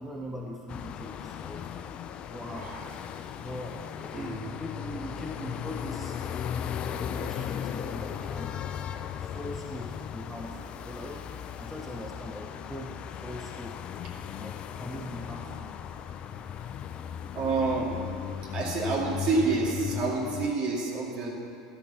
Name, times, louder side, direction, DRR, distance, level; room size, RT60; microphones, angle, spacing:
voice 1, 0.0-1.7 2.3-2.9 3.4-6.2 7.2-8.6 9.2-13.8 14.4-15.7, equal, ahead, -1 dB, 0.9 m, -41 dB
sound 1, 0.7-20.5, left 8 dB, 40° left, 0.5 m, -37 dB
voice 2, 17.3-18.0 18.5-21.3, right 4 dB, 40° right, -2 dB, 2.5 m, -28 dB
12.5 x 7.0 x 5.8 m, 2.4 s
hypercardioid pair, 80°, 3 cm